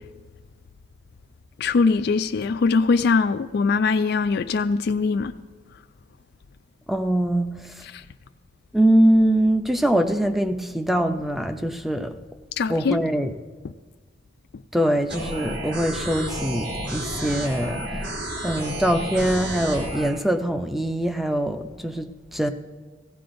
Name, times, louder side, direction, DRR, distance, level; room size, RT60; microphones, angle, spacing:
voice 1, 1.6-5.3 7.9-8.0 12.6-13.0, left 4 dB, 60° left, 0.4 m, -21 dB
voice 2, 6.9-7.5 8.7-12.1 12.7-13.3 14.7-17.8 18.4-22.5, right 1 dB, ahead, 0.5 m, -23 dB
sound 1, 15.1-20.1, right 1 dB, 65° right, 3.4 m, -31 dB
17.0 x 16.0 x 2.6 m
head